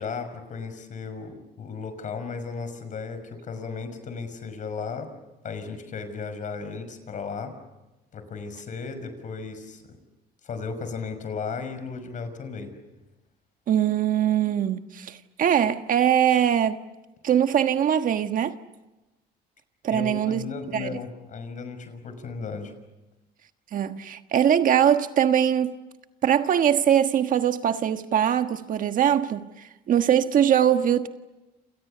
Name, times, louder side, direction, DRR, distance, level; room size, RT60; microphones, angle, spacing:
voice 1, 0.0-5.1 5.4-7.5 8.1-10.0 10.4-12.7 19.9-22.7, left 5 dB, 50° left, 5.9 m, -35 dB
voice 2, 13.7-16.8 17.2-18.6 19.8-20.4 20.7-21.0 23.7-25.7 26.2-29.5 29.9-31.1, right 9 dB, 55° right, 1.4 m, -22 dB
29.0 x 28.0 x 6.9 m
cardioid pair, 110°, 17 cm